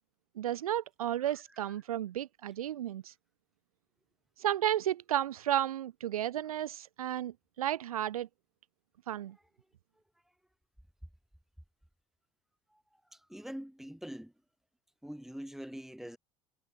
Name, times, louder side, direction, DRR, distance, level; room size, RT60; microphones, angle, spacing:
voice 1, 0.4-3.1 4.4-8.3 9.1-9.4, right 11 dB, 75° right, 0.4 m, -33 dB
voice 2, 13.3-14.3 15.0-16.2, equal, ahead, 6.8 m, -43 dB
figure-of-eight pair, 70°, 18 cm